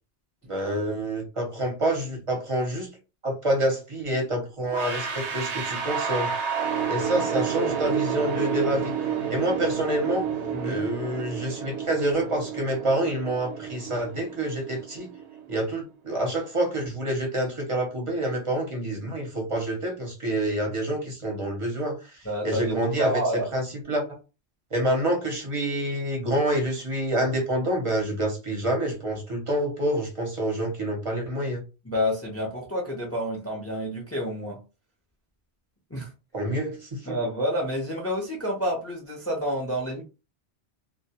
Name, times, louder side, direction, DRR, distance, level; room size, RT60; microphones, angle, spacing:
voice 1, 0.5-2.9 3.2-6.3 6.9-8.9 9.3-10.3 10.6-15.1 15.5-23.2 23.5-24.1 24.7-31.6 36.3-37.1, right 1 dB, 35° right, 0.6 m, -27 dB
sound 1, 4.7-15.6, right 7 dB, 85° right, 0.9 m, -30 dB
voice 2, 10.5-10.8 22.2-23.5 31.9-34.6 35.9-36.1 37.0-40.0, equal, 20° left, 0.4 m, -29 dB
2.1 x 2.1 x 2.8 m
omnidirectional pair, 1.1 m